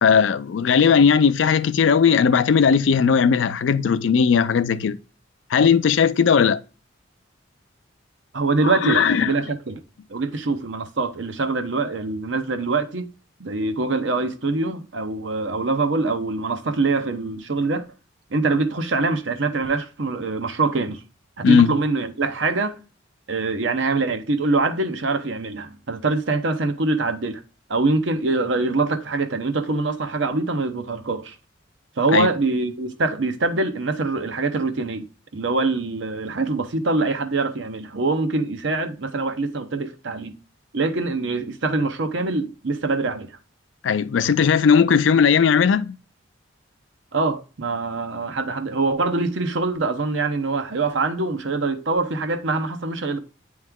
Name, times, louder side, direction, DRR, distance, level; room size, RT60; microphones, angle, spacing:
voice 1, 0.0-5.0 5.5-6.6 8.8-9.3 21.4-21.7 32.1-32.3 43.8-46.0, left 6 dB, 75° left, 0.4 m, -17 dB
voice 2, 8.3-9.8 10.1-13.1 13.4-17.9 18.3-21.0 21.4-22.8 23.3-27.4 27.7-31.4 32.0-40.4 40.7-43.4 47.1-53.2, right 3 dB, 70° right, 0.8 m, -24 dB
8.9 x 3.2 x 3.5 m
head